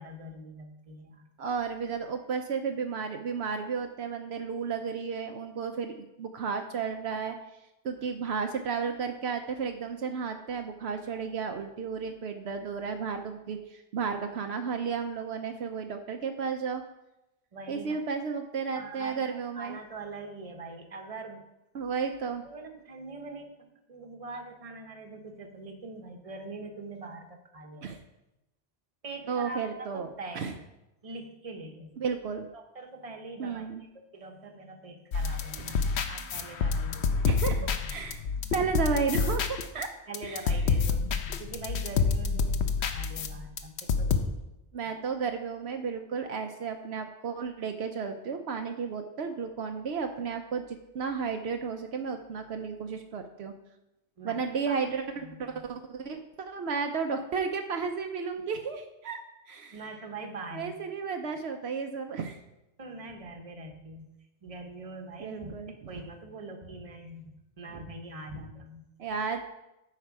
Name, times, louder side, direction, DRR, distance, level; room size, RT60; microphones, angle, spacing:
voice 1, 0.0-1.3 17.5-18.0 18.7-19.2 19.5-21.5 22.4-27.9 29.0-29.6 29.9-30.5 31.0-31.9 32.5-33.6 34.1-37.2 38.1-38.2 38.6-38.7 40.1-41.0 41.4-44.5 54.2-54.4 54.7-54.9 55.2-55.6 59.7-60.7 62.8-64.1 64.4-67.3 67.6-68.8, right 2 dB, 35° right, 4 dB, 1.0 m, -43 dB
voice 2, 1.4-7.4 7.8-16.8 17.7-19.8 21.7-22.5 27.8-28.0 29.3-30.1 30.3-30.5 32.0-32.5 33.4-33.9 37.3-38.2 38.5-39.9 40.2-40.4 44.7-53.5 54.2-59.2 59.5-59.8 60.5-62.4 65.2-65.7 69.0-69.5, right 5 dB, 70° right, 5 dB, 0.9 m, -33 dB
sound 1, 35.1-39.8 40.1-44.2, left 5 dB, 75° left, 1.0 m, -28 dB
9.3 x 5.8 x 4.7 m, 0.92 s
omnidirectional pair, 1.1 m